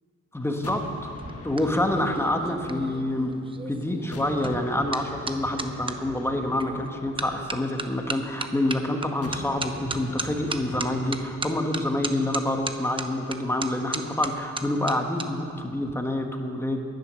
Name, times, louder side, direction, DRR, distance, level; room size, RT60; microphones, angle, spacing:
voice 1, 0.3-1.1 1.4-3.3 3.7-16.8, left 1 dB, 10° left, 3 dB, 1.4 m, -27 dB
sound 1, 0.6-3.7 4.1-8.4 9.2-11.3, left 3 dB, 50° left, 1.5 m, -43 dB
sound 2, 1.0-6.0 6.6-6.9 7.2-15.3 15.5-15.9, right 3 dB, 15° right, 0.7 m, -35 dB
20.0 x 11.0 x 6.4 m, 2.6 s
wide cardioid pair, 155°, 30 cm